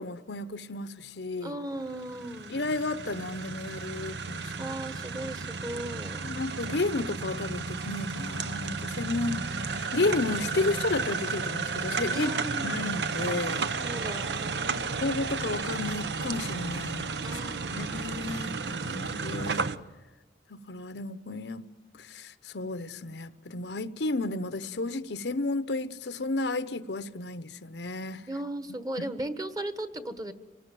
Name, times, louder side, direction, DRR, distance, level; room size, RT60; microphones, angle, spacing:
voice 1, 0.0-1.6 2.5-4.7 6.2-13.6 14.7-17.4 17.7-19.7 20.5-21.7 22.0-28.3 29.0-29.1, left 2 dB, 75° left, 0.9 m, -32 dB
voice 2, 1.4-2.6 4.6-6.2 12.1-12.9 13.8-15.1 17.2-18.2 28.3-30.3, right 1 dB, 20° right, 1.5 m, -37 dB
sound 1, 1.8-19.8, right 4 dB, 70° right, 0.9 m, -33 dB
27.0 x 19.5 x 9.2 m
head